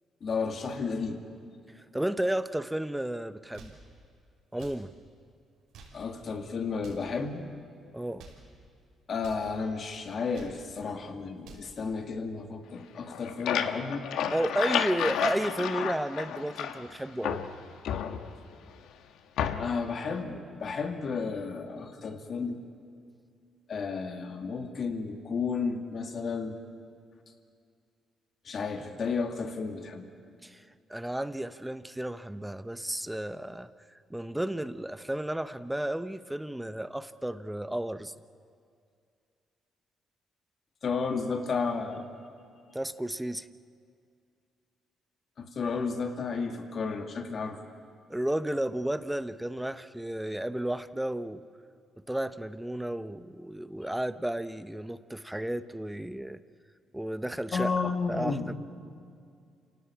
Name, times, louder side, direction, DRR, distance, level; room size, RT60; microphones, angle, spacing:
voice 1, 0.2-1.2 5.9-7.5 9.1-14.1 19.6-22.6 23.7-26.6 28.4-30.1 40.8-42.1 45.4-47.6 57.5-58.5, left 5 dB, 50° left, 5 dB, 2.4 m, -32 dB
voice 2, 1.8-3.7 4.5-4.9 7.9-8.3 14.3-17.4 30.4-30.6 30.9-33.7 34.1-38.1 42.7-43.5 48.1-51.4 52.1-56.4 56.9-58.5, right 1 dB, 5° right, 13 dB, 0.8 m, -33 dB
sound 1, 3.3-3.9 4.5-4.9 5.6-6.1 6.7-7.1 8.0-8.5 9.2-9.5 10.1-10.7 11.2-11.7, right 4 dB, 85° right, 5.8 m, -51 dB
sound 2, 13.0-16.9 17.2-18.6 19.4-19.9, left 8 dB, 85° left, 1.2 m, -31 dB
28.0 x 18.0 x 8.7 m, 2.3 s
cardioid pair, 90°, 0 cm